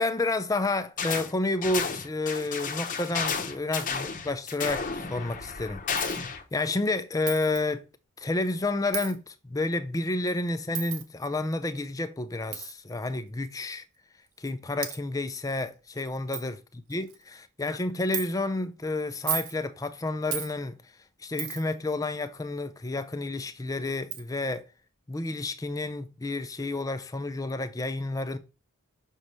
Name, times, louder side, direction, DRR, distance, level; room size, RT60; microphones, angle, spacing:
voice 1, 0.0-5.8 6.1-7.8 8.2-13.8 14.4-16.6 16.9-20.8 21.2-24.6 25.1-28.4, left 2 dB, 15° left, 0.4 m, -30 dB
sound 1, 1.0-1.3 1.6-6.4, left 5 dB, 35° left, 0.8 m, -32 dB
Coin (dropping), 6.0-6.2 7.3-7.6 8.9-9.2 10.7-11.0 12.5-12.7 13.7-13.8 14.5-14.6 14.8-15.0 15.6-15.7 16.0-16.1 16.3-16.5 16.9-17.2 18.1-18.3 19.1-19.6 20.3-20.5 21.4-21.7 23.4-23.5 24.1-24.2, right 9 dB, 80° right, 0.9 m, -33 dB
6.3 x 3.1 x 5.4 m
head